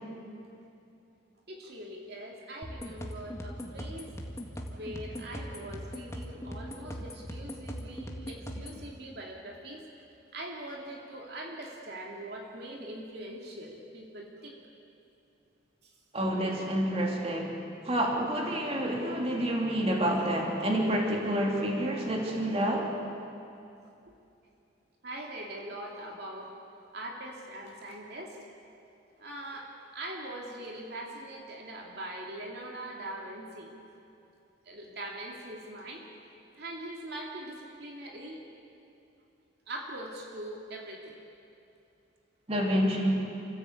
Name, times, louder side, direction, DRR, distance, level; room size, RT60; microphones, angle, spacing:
voice 1, 1.5-4.1 4.7-9.9 10.3-14.6 15.8-15.9 25.0-26.5 26.9-28.4 29.2-33.7 34.6-36.1 36.6-38.4 39.7-41.2, right 1 dB, 60° right, -1 dB, 2.6 m, -42 dB
sound 1, 2.6-8.8, equal, 15° left, 1.9 m, -40 dB
voice 2, 16.1-17.6 17.8-22.9 42.5-43.3, equal, 35° right, 0 dB, 3.0 m, -28 dB
28.5 x 15.5 x 8.4 m, 2.7 s
head